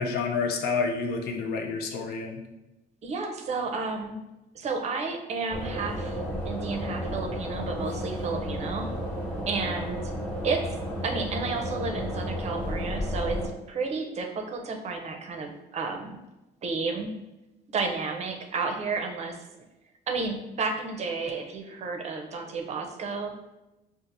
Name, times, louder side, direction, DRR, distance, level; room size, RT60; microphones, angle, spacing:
voice 1, 0.0-2.4, left 4 dB, 70° left, 4 dB, 0.6 m, -29 dB
voice 2, 3.0-4.2 4.5-8.9 9.5-10.1 10.4-10.6 11.0-13.4 13.7-16.2 16.6-17.1 17.7-19.4 20.1-23.5, right 4 dB, 40° right, 3 dB, 0.5 m, -32 dB
sound 1, 5.5-13.5, equal, 10° left, 1.1 m, -32 dB
4.1 x 2.4 x 2.5 m, 0.97 s
cardioid pair, 110°, 17 cm